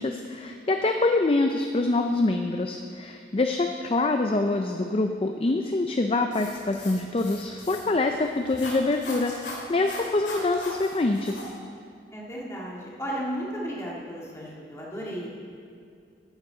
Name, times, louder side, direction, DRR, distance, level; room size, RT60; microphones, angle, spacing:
voice 1, 0.0-11.5, left 2 dB, 30° left, 5 dB, 0.4 m, -25 dB
sound 1, 6.3-11.4, left 2 dB, 85° left, 2.1 m, -40 dB
voice 2, 12.1-15.3, equal, 15° left, -5 dB, 1.8 m, -34 dB
14.0 x 9.6 x 3.8 m, 2.4 s
head